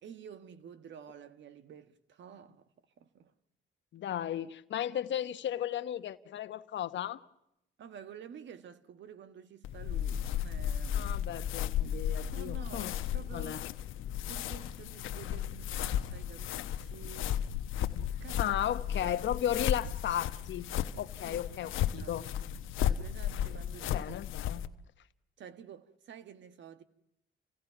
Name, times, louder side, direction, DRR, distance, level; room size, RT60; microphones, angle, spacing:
voice 1, 0.0-2.6 3.0-3.3 7.8-11.3 12.3-13.6 14.2-17.3 18.1-18.6 18.9-19.3 21.2-21.4 21.9-22.5 22.8-24.1 24.4-24.6 25.4-26.8, right 8 dB, 65° right, 1.6 m, -50 dB
voice 2, 3.9-7.2 10.9-12.9 13.3-13.6 18.4-20.7 21.0-22.2 23.9-24.6, left 11 dB, 70° left, 1.2 m, -35 dB
sound 1, 9.6-24.7, left 10 dB, 90° left, 1.0 m, -34 dB
29.5 x 17.5 x 5.9 m
cardioid pair, 90°, 20 cm